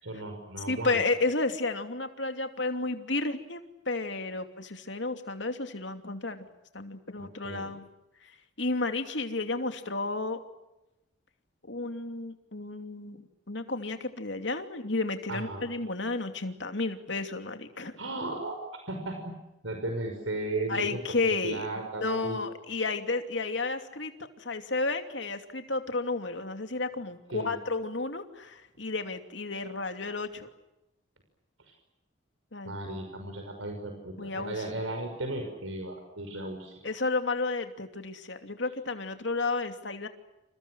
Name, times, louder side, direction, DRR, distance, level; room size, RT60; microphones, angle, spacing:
voice 1, 0.0-1.0 7.2-7.7 15.3-15.7 18.0-19.3 19.6-22.4 27.3-27.5 32.6-36.9, right 2 dB, 90° right, 4 dB, 5.9 m, -36 dB
voice 2, 0.7-6.4 6.7-7.9 8.2-8.3 8.6-10.4 11.6-17.9 20.7-21.7 22.0-24.1 24.4-30.5 32.5-32.8 34.2-34.9 36.8-40.1, left 3 dB, 65° left, 7 dB, 2.8 m, -32 dB
29.0 x 29.0 x 6.3 m, 0.94 s
head